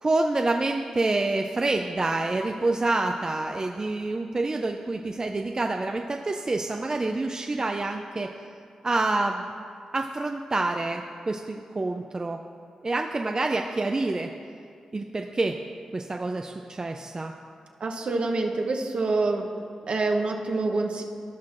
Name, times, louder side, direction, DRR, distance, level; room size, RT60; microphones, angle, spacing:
voice 1, 0.0-8.3 8.8-9.4 9.9-12.4 12.8-14.3 14.9-15.6 15.9-17.3, right 2 dB, 35° right, 4 dB, 0.4 m, -27 dB
voice 2, 17.8-19.5 19.9-21.0, right 3 dB, 60° right, 2 dB, 0.9 m, -26 dB
16.0 x 5.8 x 2.5 m, 2.3 s
supercardioid pair, 40°, 2 cm